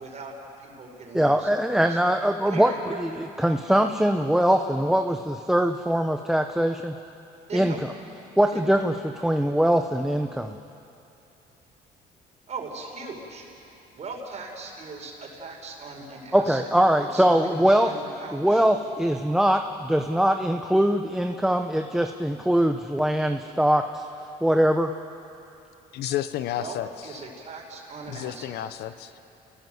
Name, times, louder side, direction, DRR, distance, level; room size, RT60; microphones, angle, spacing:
voice 1, 0.0-1.6 1.9-2.0 2.4-3.0 7.5-7.8 8.5-8.8 12.5-16.7 17.0-18.7 26.5-26.8 27.0-28.5, right 3 dB, 40° right, 1 dB, 5.3 m, -39 dB
voice 2, 1.1-2.7 3.0-3.1 3.4-6.9 7.5-7.7 8.4-9.0 9.2-10.6 16.3-17.9 18.3-24.1 24.4-24.9, equal, 5° right, 5 dB, 0.8 m, -22 dB
voice 3, 25.9-27.2 28.1-29.2, left 12 dB, 75° left, 11 dB, 0.9 m, -31 dB
29.0 x 18.0 x 7.9 m, 2.8 s
cardioid pair, 110°, 17 cm